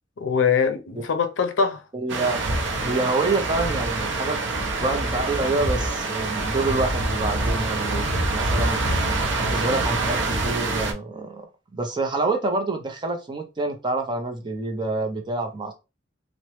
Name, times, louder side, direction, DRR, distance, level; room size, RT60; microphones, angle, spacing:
voice 1, 0.2-1.9 7.8-8.2, left 6 dB, 80° left, 0.5 m, -23 dB
voice 2, 1.9-2.5 2.8-4.4 4.8-8.8 9.4-11.5 11.7-15.7, right 2 dB, 25° right, 0.5 m, -27 dB
sound 1, 2.1-10.9, right 2 dB, 75° right, 0.6 m, -25 dB
2.8 x 2.1 x 3.0 m
head